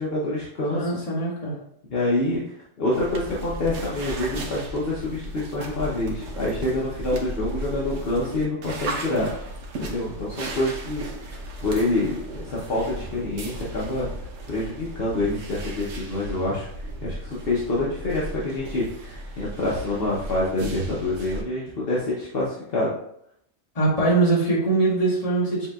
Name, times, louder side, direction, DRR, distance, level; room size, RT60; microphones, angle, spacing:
voice 1, 0.0-1.0 1.9-9.3 9.8-11.0 11.6-14.1 14.5-22.9, left 2 dB, 60° left, -6 dB, 1.0 m, -27 dB
voice 2, 0.7-1.6 23.7-25.7, right 3 dB, 35° left, -6 dB, 1.5 m, -22 dB
sound 1, 2.9-21.4, right 1 dB, 90° right, 1.1 m, -35 dB
7.2 x 2.9 x 2.3 m, 0.75 s
omnidirectional pair, 1.2 m